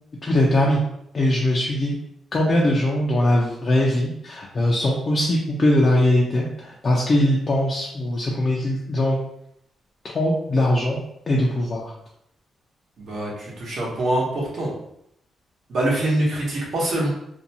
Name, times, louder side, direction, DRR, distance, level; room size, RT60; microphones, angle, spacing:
voice 1, 0.2-0.8 1.1-1.9 2.3-9.2 10.1-11.0 11.3-11.9, left 1 dB, 35° left, -3 dB, 0.4 m, -21 dB
voice 2, 13.0-14.7 15.7-17.1, right 1 dB, 60° right, -4 dB, 1.0 m, -24 dB
2.6 x 2.2 x 2.7 m, 0.77 s
cardioid pair, 125°, 0 cm